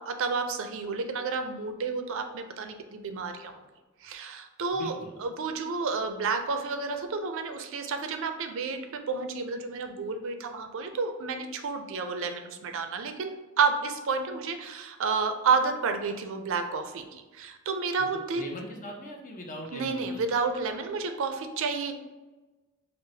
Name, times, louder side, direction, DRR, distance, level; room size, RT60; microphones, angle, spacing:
voice 1, 0.1-3.6 4.0-4.9 5.2-18.5 19.7-21.9, right 4 dB, 65° right, 7 dB, 0.4 m, -30 dB
voice 2, 4.7-5.1 18.4-20.2, left 1 dB, 40° left, 1 dB, 0.6 m, -40 dB
5.6 x 2.0 x 2.7 m, 1.2 s
head